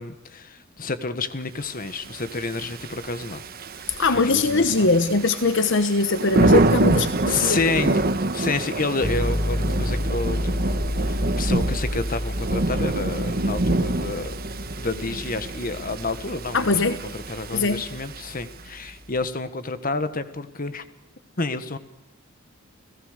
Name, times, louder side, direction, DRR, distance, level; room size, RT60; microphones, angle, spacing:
voice 1, 0.0-3.4 3.8-4.9 7.3-8.0 8.3-14.3 14.8-20.8 21.4-21.8, left 3 dB, 45° left, 11 dB, 1.4 m, -29 dB
Thunder / Rain, 2.0-18.6, right 2 dB, 50° right, 1.3 m, -26 dB
voice 2, 4.0-7.6 16.5-17.0 17.5-17.8, left 3 dB, 65° left, 11 dB, 1.1 m, -21 dB
sound 1, 9.0-18.9, left 1 dB, 25° left, 1.5 m, -30 dB
30.0 x 17.0 x 6.6 m, 0.96 s
head